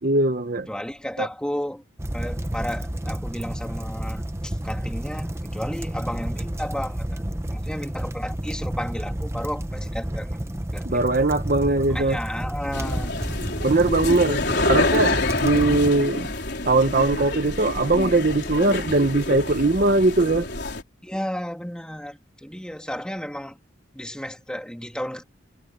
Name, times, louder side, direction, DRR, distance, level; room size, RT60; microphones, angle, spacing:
voice 1, 0.0-0.7 1.2-1.3 10.8-12.2 13.6-16.3 16.6-20.5, right 2 dB, 45° right, 0.9 m, -21 dB
voice 2, 0.7-1.8 2.1-7.2 7.5-10.3 10.7-11.1 11.9-13.2 14.3-14.7 21.0-23.6 23.9-25.2, equal, 5° left, 2.5 m, -33 dB
sound 1, 2.0-15.9, right 1 dB, 15° right, 0.9 m, -30 dB
sound 2, 12.7-20.8, left 2 dB, 55° left, 4.8 m, -27 dB
head